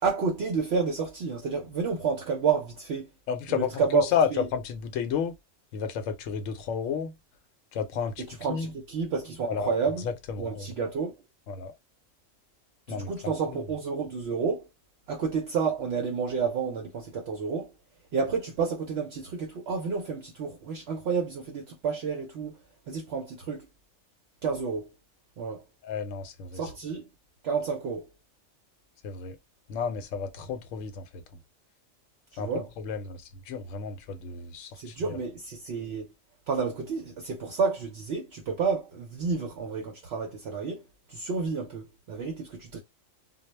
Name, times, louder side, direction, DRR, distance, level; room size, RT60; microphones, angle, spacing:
voice 1, 0.0-3.1 3.5-4.5 8.2-10.0 10.4-11.1 12.9-14.7 15.1-17.7 18.1-22.6 22.9-23.7 24.4-24.9 25.4-25.6 26.5-27.1 27.4-28.1 32.3-32.7 34.8-36.1 36.5-40.8 41.1-42.8, right 5 dB, 65° right, 0.7 m, -30 dB
voice 2, 3.3-5.3 5.7-7.1 7.7-8.2 8.5-8.7 9.5-9.7 10.0-10.7 11.5-11.7 12.9-13.6 25.8-26.6 29.0-29.4 29.7-31.2 32.4-35.2, left 6 dB, 80° left, 0.9 m, -32 dB
2.3 x 2.0 x 3.1 m
omnidirectional pair, 1.3 m